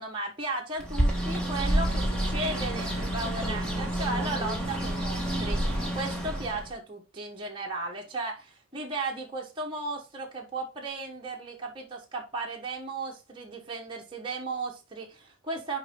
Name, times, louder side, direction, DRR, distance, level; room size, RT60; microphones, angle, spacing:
voice 1, 0.0-5.6 5.9-15.8, right 2 dB, 25° right, -2 dB, 1.3 m, -35 dB
Bird, 0.8-6.7, right 1 dB, 5° left, 1.4 m, -29 dB
6.0 x 4.8 x 3.8 m, 0.28 s
head